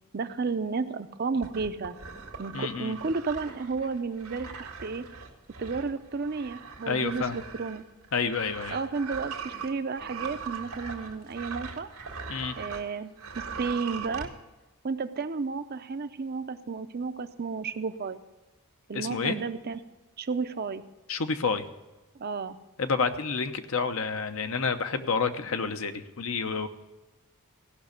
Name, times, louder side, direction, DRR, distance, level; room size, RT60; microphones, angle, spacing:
voice 1, 0.1-2.0 2.4-5.1 5.6-7.8 8.7-11.9 12.6-14.3 14.8-18.2 18.9-19.8 20.2-20.8 22.1-22.6, right 4 dB, 45° right, 10 dB, 0.5 m, -32 dB
sound 1, 1.4-12.9 13.2-14.3, right 5 dB, 90° right, 1.9 m, -40 dB
voice 2, 2.5-2.9 6.9-7.4 8.1-8.8 12.3-12.5 18.9-19.4 21.1-21.7 22.8-26.7, left 5 dB, 65° left, 9 dB, 0.8 m, -29 dB
16.0 x 5.9 x 6.6 m, 1.1 s
head